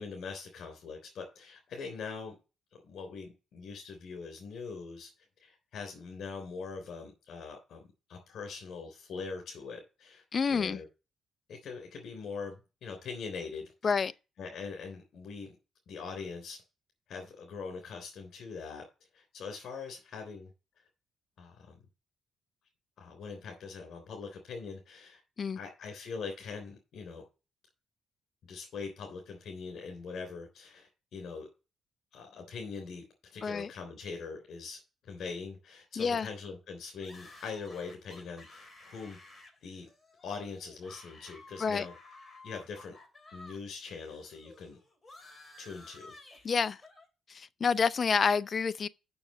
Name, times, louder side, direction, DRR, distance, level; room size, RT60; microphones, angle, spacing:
voice 1, 0.0-2.4 2.7-5.1 5.4-7.8 8.1-10.9 11.5-13.9 14.4-15.6 15.9-16.6 17.1-18.8 19.1-20.5 21.4-21.8 23.0-25.2 25.6-27.2 28.5-31.5 32.1-33.0 33.3-34.8 35.1-39.9 40.2-41.9 42.4-43.0 43.3-44.8 45.6-46.2, left 5 dB, 65° left, 3.5 m, -42 dB
voice 2, 10.3-10.8 13.8-14.1 25.4-25.6 33.4-33.7 36.0-36.3 41.6-41.9 46.4-46.8 47.3-48.9, left 5 dB, 45° left, 0.5 m, -28 dB
sound 1, 37.0-43.6 43.9-47.1, left 2 dB, 20° left, 3.2 m, -54 dB
7.1 x 6.3 x 7.5 m
cardioid pair, 90°, 0 cm